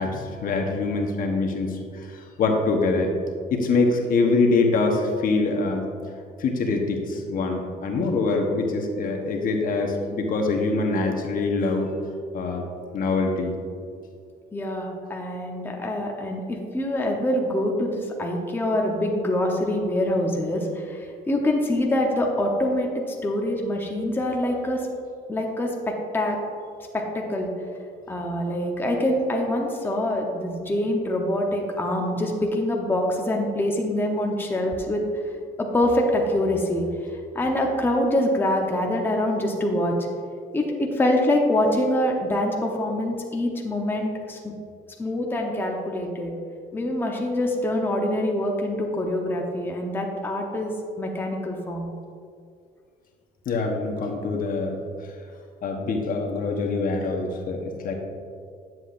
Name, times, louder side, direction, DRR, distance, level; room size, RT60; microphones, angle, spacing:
voice 1, 0.0-3.1 3.5-5.9 6.4-11.9 12.3-12.7 12.9-13.6 53.5-54.8 55.6-57.9, left 3 dB, 55° left, 2 dB, 1.1 m, -24 dB
voice 2, 14.5-16.4 16.7-17.9 18.2-21.0 21.3-22.9 23.2-24.8 25.3-26.4 26.9-27.5 28.1-35.0 35.6-36.8 37.3-39.9 40.5-44.4 45.0-46.3 46.7-51.9, left 1 dB, 10° left, 0 dB, 0.9 m, -25 dB
9.9 x 7.5 x 2.6 m, 2.3 s
cardioid pair, 110°, 17 cm